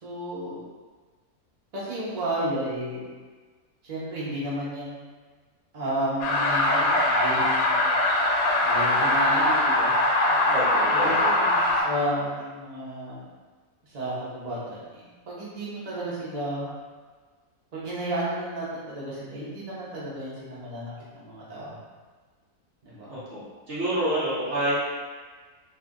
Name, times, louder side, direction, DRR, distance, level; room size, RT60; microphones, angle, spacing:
voice 1, 0.0-0.6 1.7-3.0 3.9-5.0 5.7-7.9 8.6-9.9 10.3-10.5 10.9-13.2 13.9-16.7 17.7-21.7 22.8-23.1, right 1 dB, 35° right, -8 dB, 0.8 m, -32 dB
sound 1, 6.2-11.8, left 2 dB, 75° left, 1.0 m, -22 dB
voice 2, 10.5-11.4 23.1-23.4 23.7-24.8, right 1 dB, 55° right, -9 dB, 1.0 m, -28 dB
2.6 x 2.5 x 3.6 m, 1.4 s
omnidirectional pair, 1.6 m